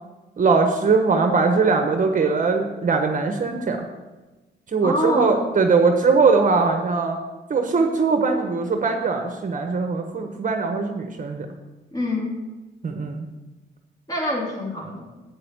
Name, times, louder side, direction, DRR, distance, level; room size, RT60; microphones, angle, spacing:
voice 1, 0.4-3.8 4.7-7.2 7.5-11.5 12.8-13.3, right 4 dB, 40° right, 4 dB, 1.2 m, -21 dB
voice 2, 4.8-5.4 11.9-12.3 14.1-15.1, left 1 dB, 20° left, -4 dB, 3.2 m, -25 dB
8.4 x 6.8 x 8.4 m, 1.1 s
cardioid pair, 90°, 20 cm